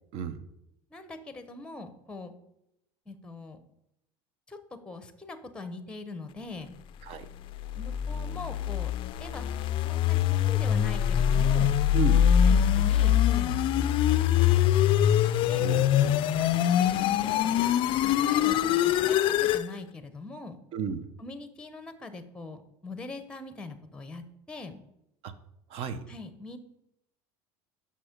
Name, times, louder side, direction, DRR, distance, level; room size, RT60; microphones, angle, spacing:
voice 1, 0.9-2.3 3.1-3.6 4.5-4.6 4.8-6.8 7.8-8.9 9.2-9.5 9.8-11.8 12.4-13.9 15.5-15.6 16.5-17.5 18.0-20.6 21.2-24.8 26.1-26.6, left 2 dB, 10° left, 10 dB, 0.7 m, -42 dB
sound 1, 7.5-19.7, left 10 dB, 45° left, 0.4 m, -24 dB
voice 2, 15.6-16.2 20.7-21.1 25.2-25.3 25.7-26.0, right 6 dB, 55° right, 12 dB, 0.7 m, -33 dB
5.9 x 5.6 x 5.0 m, 0.81 s
supercardioid pair, 120°, 12 cm